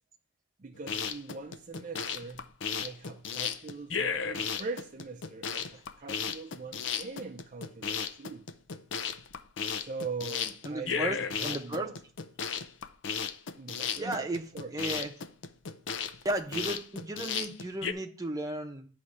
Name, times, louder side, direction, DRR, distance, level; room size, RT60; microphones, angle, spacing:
voice 1, 0.6-2.5 2.8-8.5 9.8-11.9 13.6-14.3 14.5-15.1, right 4 dB, 40° right, 0.5 m, -42 dB
sound 1, 0.8-17.9, left 6 dB, 75° left, 0.5 m, -35 dB
voice 2, 10.6-11.9 14.0-14.4 14.7-15.1 16.2-18.9, right 1 dB, 20° right, 0.9 m, -34 dB
9.5 x 3.2 x 6.6 m
head